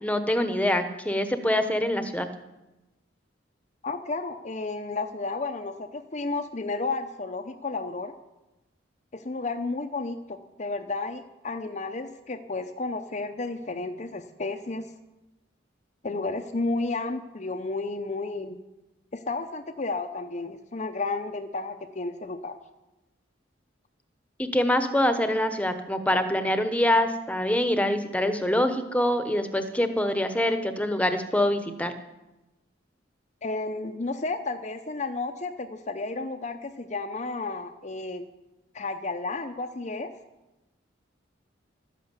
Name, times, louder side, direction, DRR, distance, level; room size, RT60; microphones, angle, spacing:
voice 1, 0.0-2.3 24.4-31.9, left 1 dB, 5° left, 8 dB, 1.0 m, -25 dB
voice 2, 3.8-8.2 9.1-14.9 16.0-18.6 19.1-22.6 33.4-38.3 38.7-40.1, left 3 dB, 40° left, 7 dB, 0.7 m, -32 dB
12.5 x 11.0 x 8.2 m, 1.0 s
head